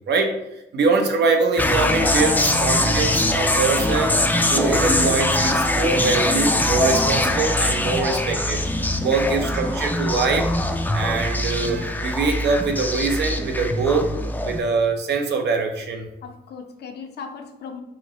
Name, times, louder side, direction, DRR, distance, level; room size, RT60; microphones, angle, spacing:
voice 1, 0.7-4.2 4.5-8.6 9.0-10.5 10.9-14.1 14.4-16.1, right 4 dB, 75° right, 4 dB, 0.6 m, -23 dB
sound 1, 1.6-14.6, left 1 dB, 10° left, 0.3 m, -22 dB
voice 2, 16.2-17.8, left 6 dB, 70° left, 4 dB, 0.6 m, -38 dB
4.9 x 2.1 x 2.9 m, 0.90 s
cardioid pair, 70°, 18 cm